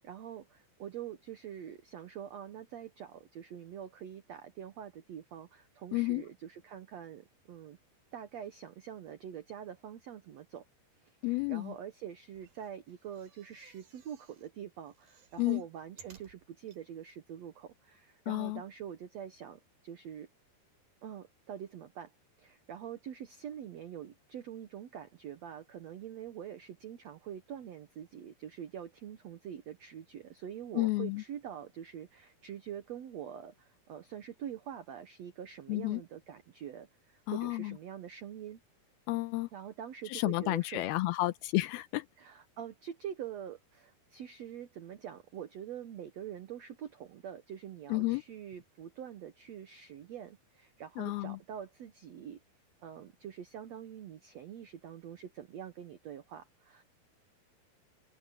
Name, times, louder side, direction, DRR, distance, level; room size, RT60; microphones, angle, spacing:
voice 1, 0.0-7.8 8.1-10.7 11.0-20.3 21.0-22.1 22.4-38.6 39.5-40.8 42.2-52.4 52.8-56.8, right 9 dB, 85° right, 1.4 m, -45 dB
voice 2, 5.9-6.2 11.2-11.7 15.4-15.6 18.3-18.6 30.8-31.2 35.7-36.0 37.3-37.8 39.1-39.5 40.1-42.1 47.9-48.2 51.0-51.4, left 20 dB, 80° left, 2.5 m, -31 dB
sound 1, 12.3-14.5 14.9-16.8 17.4-17.5 17.7-17.8, right 7 dB, 65° right, 5.2 m, -60 dB
open air
omnidirectional pair, 4.7 m